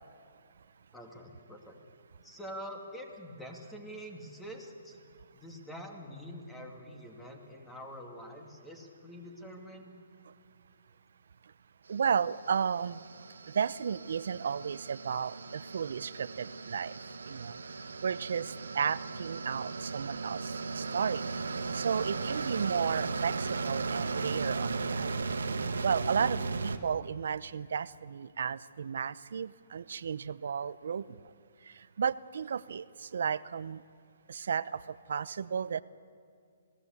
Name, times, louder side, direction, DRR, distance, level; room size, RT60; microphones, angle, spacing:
voice 1, 0.9-1.8 2.2-5.0 5.3-10.0, equal, 5° left, 2 dB, 2.4 m, -46 dB
voice 2, 11.9-13.1 13.5-17.0 17.3-17.6 18.0-21.3 21.7-25.1 25.8-31.2 31.7-33.8 34.3-35.8, right 7 dB, 70° right, 18 dB, 0.7 m, -33 dB
sound 1, 12.1-26.8, right 4 dB, 90° right, 1.3 m, -36 dB
28.0 x 17.5 x 8.2 m, 2.3 s
hypercardioid pair, 150°, 0 cm